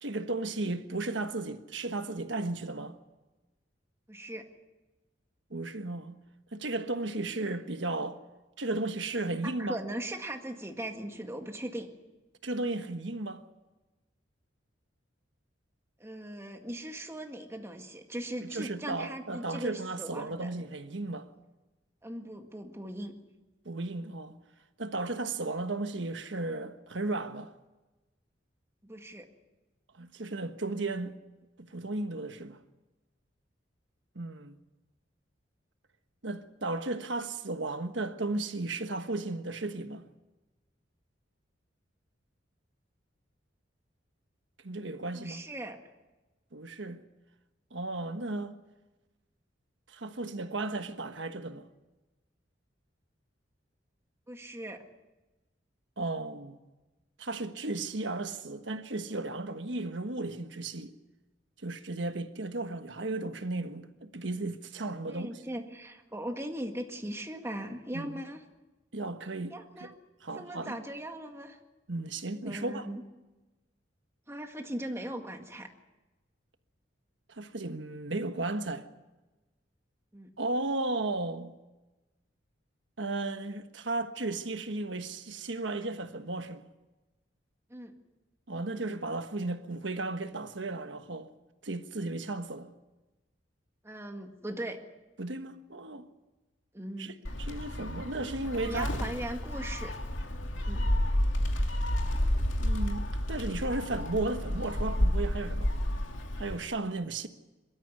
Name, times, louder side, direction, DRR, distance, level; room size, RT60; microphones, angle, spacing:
voice 1, 0.0-3.0 5.5-6.2 6.5-8.2 8.6-9.8 12.4-13.4 18.4-21.3 23.6-24.4 24.8-27.5 29.9-31.2 31.6-32.6 34.1-34.6 36.2-40.0 44.6-45.4 46.5-47.0 47.7-48.5 49.9-51.7 56.0-56.6 57.2-60.9 61.6-65.4 67.9-68.2 68.9-69.9 70.2-70.8 71.9-72.9 77.3-78.9 80.4-81.6 83.0-86.7 88.5-91.3 91.6-92.7 95.2-96.1 97.0-99.1 102.6-105.7 106.4-107.3, right 2 dB, 70° right, 1.4 m, -35 dB
voice 2, 4.1-4.4 9.4-11.9 16.0-20.5 22.0-23.1 28.8-29.3 45.1-45.8 54.3-54.8 65.1-68.4 69.5-69.9 70.4-71.6 72.5-73.0 74.3-75.7 80.1-80.3 87.7-87.9 93.8-94.8 96.7-97.1 98.6-99.9 100.7-100.8, right 1 dB, 15° right, 1.9 m, -39 dB
Gull seagull, 97.2-106.6, left 1 dB, 85° left, 2.5 m, -30 dB
22.5 x 13.5 x 9.5 m
head